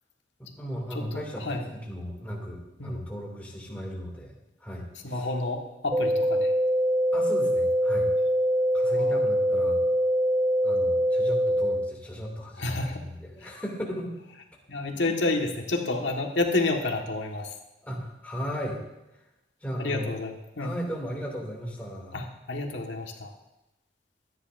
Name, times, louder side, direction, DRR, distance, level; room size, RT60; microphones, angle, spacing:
voice 1, 0.4-4.3 4.6-5.3 7.1-8.1 8.7-9.8 10.6-14.1 17.8-18.8 19.6-20.1 20.6-22.3, equal, 10° left, -1 dB, 2.4 m, -36 dB
voice 2, 0.9-1.6 2.8-3.0 5.0-6.5 8.9-9.2 12.6-13.0 13.4-13.5 14.7-17.5 19.8-20.7 22.1-23.3, left 2 dB, 85° left, 2 dB, 1.5 m, -30 dB
sound 1, 5.9-11.9, equal, 20° right, 0.4 m, -24 dB
24.5 x 9.9 x 2.6 m, 0.93 s
head